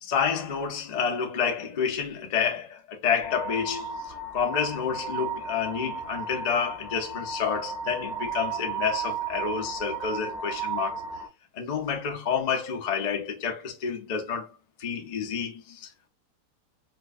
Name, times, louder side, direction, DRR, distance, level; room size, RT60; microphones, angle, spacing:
voice 1, 0.0-11.0 11.5-14.5 14.8-16.1, left 6 dB, 75° left, 0.3 m, -29 dB
sound 1, 3.2-11.3, right 5 dB, 50° right, 0.8 m, -34 dB
4.5 x 2.4 x 2.5 m
omnidirectional pair, 1.9 m